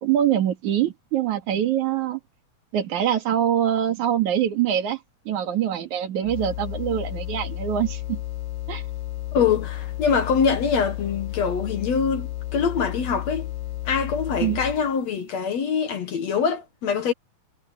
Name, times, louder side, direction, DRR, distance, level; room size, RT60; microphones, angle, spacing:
voice 1, 0.0-2.2 2.7-5.0 5.3-8.2 8.7-8.8 14.4-14.6, right 10 dB, 60° right, 3.3 m, -24 dB
sound 1, 6.2-14.9, left 14 dB, 80° left, 1.8 m, -32 dB
voice 2, 9.3-13.5 13.9-17.1, left 6 dB, 55° left, 2.3 m, -24 dB
omnidirectional pair, 4.1 m